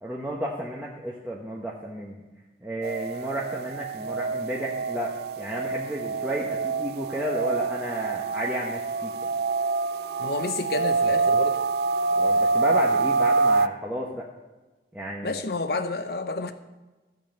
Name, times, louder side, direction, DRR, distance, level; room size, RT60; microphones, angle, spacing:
voice 1, 0.0-2.2 2.6-9.1 12.1-14.2 14.9-15.4, equal, 10° right, -3 dB, 1.0 m, -32 dB
sound 1, 2.8-13.7, right 3 dB, 60° right, 0.4 m, -26 dB
voice 2, 10.2-11.6 15.2-16.5, left 3 dB, 60° left, 9 dB, 0.9 m, -29 dB
14.5 x 5.4 x 7.8 m, 1.2 s
head